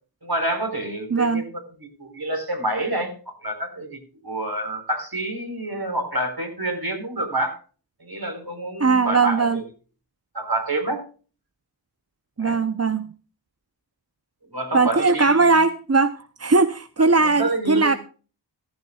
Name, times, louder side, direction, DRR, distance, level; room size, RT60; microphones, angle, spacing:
voice 1, 0.2-7.6 8.0-9.6 10.3-11.0 12.4-12.6 14.5-15.5 17.2-18.0, right 1 dB, 55° right, 4 dB, 4.4 m, -28 dB
voice 2, 1.1-1.5 8.8-9.6 12.4-13.1 14.7-18.0, right 4 dB, 35° right, 12 dB, 0.7 m, -19 dB
14.5 x 14.0 x 2.4 m, 0.37 s
wide cardioid pair, 40°, 43 cm